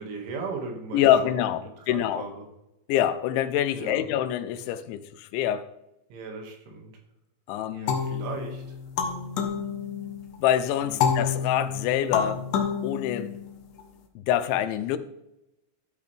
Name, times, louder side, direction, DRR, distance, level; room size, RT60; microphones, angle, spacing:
voice 1, 0.0-1.5 1.8-2.5 3.7-4.0 6.1-6.9 7.7-8.6 10.8-11.2, right 4 dB, 90° right, 4.4 m, -37 dB
voice 2, 0.9-2.2 2.9-5.6 7.5-8.0 10.4-12.4 12.8-13.3 14.2-15.0, left 11 dB, 85° left, 3.0 m, -25 dB
sound 1, 7.9-10.4 11.0-13.8, left 7 dB, 70° left, 2.1 m, -29 dB
13.5 x 8.5 x 3.4 m
omnidirectional pair, 5.3 m